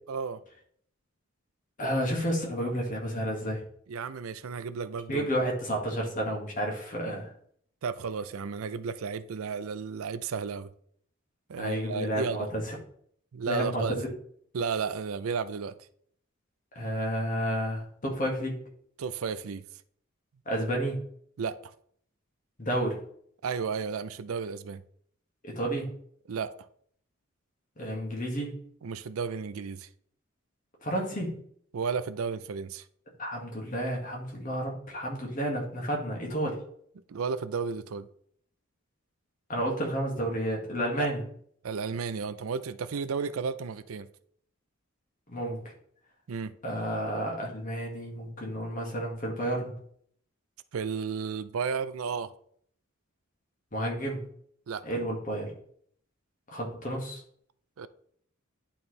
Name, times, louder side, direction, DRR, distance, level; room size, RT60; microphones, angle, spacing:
voice 1, 0.1-0.4 3.9-5.3 7.8-10.7 11.5-12.5 13.3-14.0 14.5-15.7 19.0-19.6 21.4-21.7 23.4-24.8 26.3-26.5 28.8-29.9 31.7-32.8 37.1-38.1 41.0-41.1 41.6-44.1 46.3-46.5 50.7-52.3 54.7-54.8 57.8-57.9, right 5 dB, 80° right, 0.5 m, -33 dB
voice 2, 1.8-3.6 5.1-7.3 11.6-12.8 13.5-14.1 16.8-18.6 20.5-21.0 22.6-23.0 25.4-25.9 27.8-28.5 30.8-31.3 33.2-36.6 39.5-41.2 45.3-45.6 46.6-49.8 53.7-54.2 54.8-55.5 56.5-57.2, equal, 40° left, 1.8 m, -31 dB
10.5 x 4.3 x 3.2 m
head